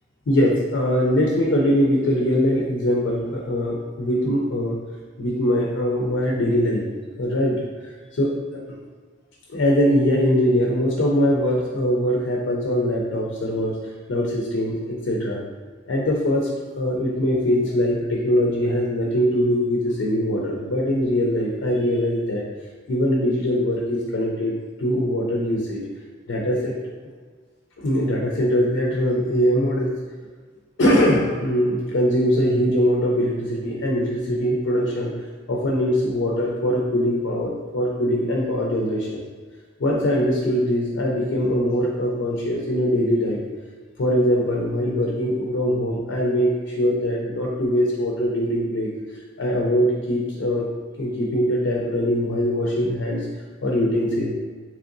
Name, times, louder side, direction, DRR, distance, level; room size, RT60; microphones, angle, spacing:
voice 1, 0.3-4.8 5.2-6.8 7.2-8.3 9.5-13.8 14.1-15.4 15.9-16.5 16.8-22.5 22.9-24.5 24.8-25.8 26.3-26.7 27.8-30.0 30.8-35.1 35.5-39.2 39.8-43.4 44.0-48.9 49.4-50.7 51.0-53.3 53.6-54.3, equal, 80° left, -2 dB, 0.5 m, -22 dB
3.7 x 3.0 x 2.5 m, 1.5 s
head